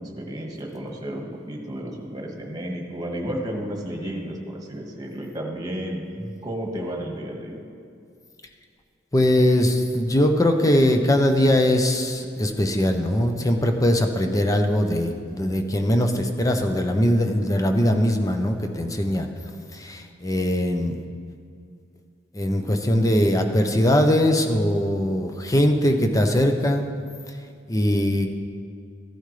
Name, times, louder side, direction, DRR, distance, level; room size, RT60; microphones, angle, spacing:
voice 1, 0.0-6.0 6.4-7.6, equal, 20° right, 0 dB, 1.5 m, -32 dB
voice 2, 9.1-19.3 19.7-20.9 22.3-26.8 27.7-28.3, left 1 dB, 20° left, 5 dB, 0.7 m, -21 dB
15.0 x 10.5 x 3.3 m, 2.3 s
head